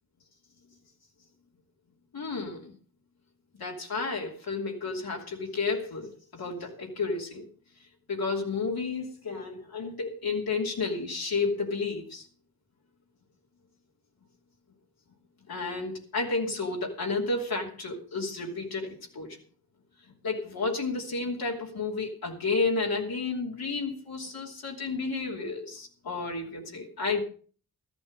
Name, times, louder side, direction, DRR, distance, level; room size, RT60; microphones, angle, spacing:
voice 1, 2.1-2.7 3.5-7.5 8.1-12.3 15.5-19.4 20.2-27.2, left 3 dB, 85° left, -1 dB, 2.9 m, -31 dB
13.5 x 11.5 x 5.2 m, 0.41 s
cardioid pair, 50°, 36 cm